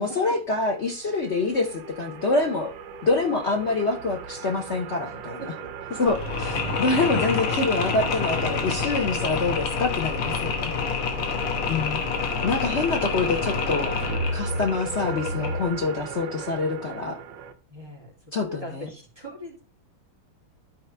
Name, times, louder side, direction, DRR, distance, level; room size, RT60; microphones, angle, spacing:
voice 1, 0.0-2.7 3.0-5.5 5.9-10.7 11.7-12.0 12.4-13.9 14.3-17.2 18.3-18.9, left 3 dB, 60° left, 3 dB, 0.7 m, -26 dB
sound 1, 0.7-17.5, right 7 dB, 70° right, 1.4 m, -39 dB
voice 2, 5.4-5.7 11.1-11.5 11.7-12.2 17.7-18.1 18.4-19.6, right 1 dB, 10° right, -2 dB, 2.7 m, -41 dB
Mechanisms, 6.1-15.8, left 4 dB, 90° left, 2.1 m, -27 dB
13.0 x 4.4 x 3.3 m, 0.35 s
omnidirectional pair, 2.3 m